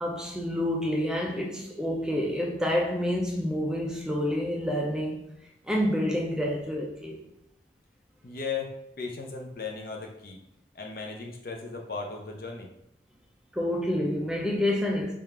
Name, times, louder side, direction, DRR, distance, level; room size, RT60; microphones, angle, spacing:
voice 1, 0.0-5.2 5.7-7.2 13.5-15.1, left 1 dB, 5° right, -1 dB, 0.4 m, -28 dB
voice 2, 8.2-10.4 10.7-12.7, left 4 dB, 55° left, 1 dB, 0.6 m, -36 dB
3.6 x 2.5 x 4.4 m, 0.81 s
head